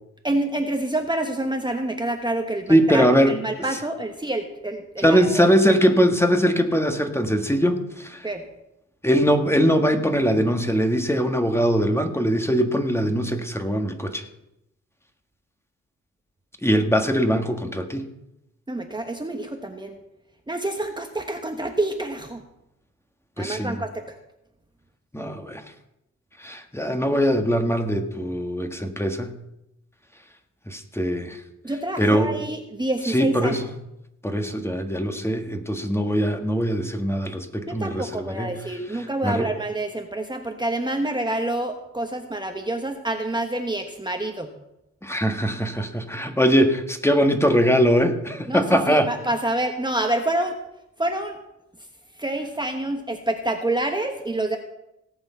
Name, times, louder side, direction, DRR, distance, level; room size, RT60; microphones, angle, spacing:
voice 1, 0.2-5.4 8.2-8.4 18.7-20.0 20.5-22.4 23.4-24.1 31.6-33.6 37.7-44.5 48.5-50.6 51.0-51.4 52.2-54.6, right 1 dB, 15° right, 4 dB, 1.3 m, -27 dB
voice 2, 2.7-3.3 5.0-8.3 9.0-14.2 16.6-18.1 23.4-23.8 25.1-25.6 26.4-29.3 30.7-31.4 32.0-32.4 33.0-33.7 34.2-38.5 38.9-39.5 45.0-49.1, equal, 10° left, 5 dB, 1.6 m, -21 dB
18.0 x 7.1 x 5.7 m, 0.87 s
cardioid pair, 75°, 29 cm